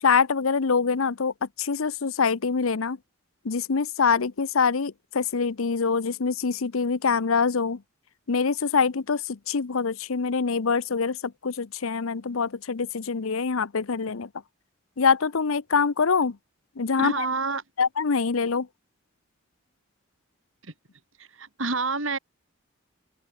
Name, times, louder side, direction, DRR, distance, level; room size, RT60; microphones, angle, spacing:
voice 1, 0.0-3.0 3.4-7.8 8.3-14.3 15.0-16.4 16.8-17.3 17.8-18.7, left 5 dB, 80° left, 0.7 m, -25 dB
voice 2, 17.0-17.6 21.4-22.2, right 3 dB, 70° right, 5.8 m, -27 dB
open air
head